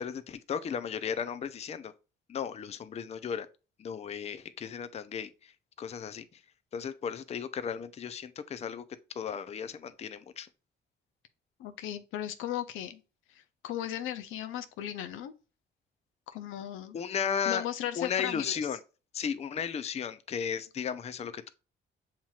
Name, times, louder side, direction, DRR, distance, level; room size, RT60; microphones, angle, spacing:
voice 1, 0.0-1.9 2.3-3.5 3.8-5.5 5.8-6.4 6.7-8.8 9.2-10.5 16.9-17.6 18.0-18.8 19.1-21.5, left 7 dB, 35° left, 0.4 m, -35 dB
voice 2, 11.6-13.0 13.3-15.3 16.3-17.0 17.5-18.6, left 11 dB, 90° left, 0.5 m, -36 dB
7.2 x 2.9 x 2.3 m
cardioid pair, 90°, 20 cm